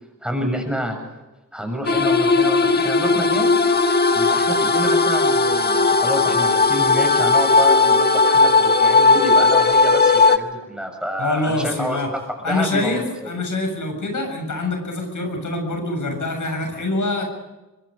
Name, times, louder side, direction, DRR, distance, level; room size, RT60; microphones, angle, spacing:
voice 1, 0.2-1.0 1.5-3.5 4.1-12.0 12.5-13.0, equal, 5° right, 3 dB, 7.3 m, -28 dB
sound 1, 1.9-10.4, left 3 dB, 30° left, 1.4 m, -16 dB
voice 2, 11.2-12.1 12.4-17.2, left 2 dB, 65° left, 4 dB, 7.1 m, -25 dB
25.0 x 24.0 x 5.1 m, 1.1 s
wide cardioid pair, 110°, 33 cm